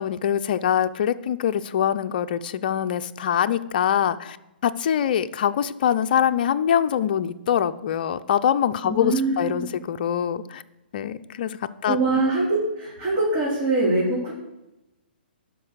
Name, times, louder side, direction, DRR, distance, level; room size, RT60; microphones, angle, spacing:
voice 1, 0.0-4.4 4.6-10.6 10.9-12.0, left 9 dB, 55° left, 11 dB, 0.6 m, -24 dB
voice 2, 8.8-9.7 11.9-14.3, right 2 dB, 25° right, -8 dB, 3.9 m, -23 dB
12.0 x 5.4 x 6.4 m, 0.95 s
figure-of-eight pair, 125°, 6 cm